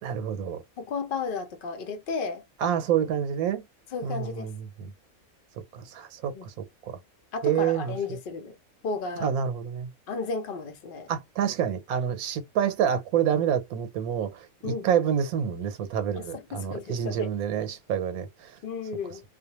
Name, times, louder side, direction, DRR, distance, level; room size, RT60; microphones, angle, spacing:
voice 1, 0.0-0.6 2.6-3.6 4.0-4.5 4.8-4.9 5.7-6.5 6.9-7.0 7.4-8.2 9.2-9.9 11.1-18.5, right 8 dB, 90° right, 1.1 m, -28 dB
voice 2, 0.8-2.4 3.9-4.5 6.3-6.5 7.3-8.5 8.8-9.3 10.1-11.1 14.6-14.9 16.1-17.4 18.6-19.2, left 4 dB, 55° left, 0.6 m, -33 dB
2.4 x 2.1 x 2.9 m
omnidirectional pair, 1.5 m